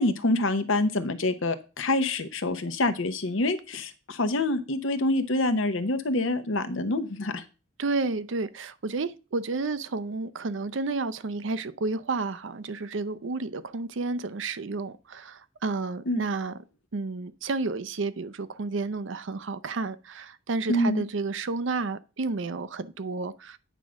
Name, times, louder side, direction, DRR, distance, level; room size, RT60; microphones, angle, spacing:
voice 1, 0.0-7.4 16.1-16.2 20.7-21.0, left 2 dB, 85° left, 0.9 m, -26 dB
voice 2, 7.8-16.5 16.9-23.6, right 3 dB, 70° right, 0.6 m, -31 dB
9.0 x 3.6 x 6.3 m
head